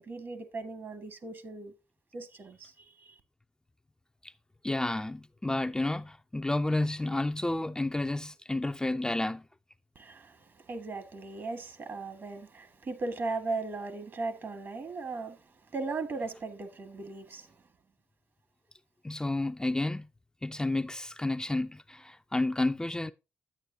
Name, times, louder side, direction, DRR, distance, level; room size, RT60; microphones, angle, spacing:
voice 1, 0.0-1.7 2.1-3.2 10.0-10.4 10.7-15.4 15.7-17.5, right 3 dB, 50° right, 1.7 m, -37 dB
voice 2, 4.6-9.5 19.0-20.1 20.4-23.1, left 2 dB, 15° left, 0.4 m, -31 dB
9.6 x 8.9 x 2.7 m
supercardioid pair, 50°, 5 cm